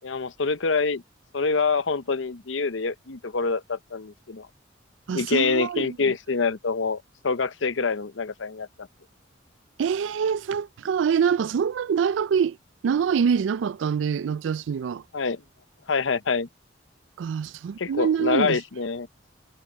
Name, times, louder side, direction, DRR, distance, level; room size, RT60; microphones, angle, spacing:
voice 1, 0.0-1.0 1.3-4.5 5.1-8.7 15.1-15.4 15.9-16.5 17.8-19.1, left 4 dB, 85° left, 0.8 m, -26 dB
voice 2, 5.1-6.0 9.8-12.6 12.8-15.0 17.2-18.6, right 7 dB, 75° right, 0.3 m, -25 dB
head